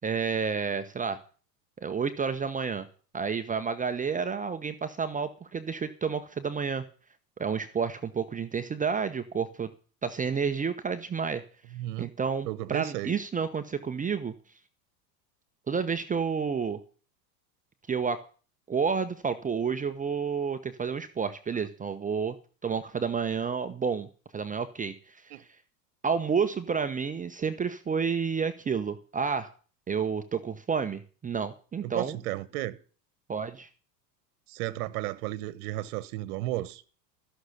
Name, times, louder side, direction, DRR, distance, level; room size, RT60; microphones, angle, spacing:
voice 1, 0.0-1.2 1.8-2.9 3.1-6.8 7.4-9.7 10.0-11.4 12.0-14.3 15.7-16.8 17.9-18.2 18.7-22.4 22.6-24.1 24.3-25.5 26.0-29.5 29.9-32.2 33.3-33.7, right 6 dB, 15° right, 0.9 m, -30 dB
voice 2, 11.7-12.1 12.5-13.2 25.3-25.4 31.8-32.8 34.5-36.8, right 16 dB, 60° right, 1.3 m, -33 dB
14.5 x 6.7 x 9.7 m
hypercardioid pair, 110°, 49 cm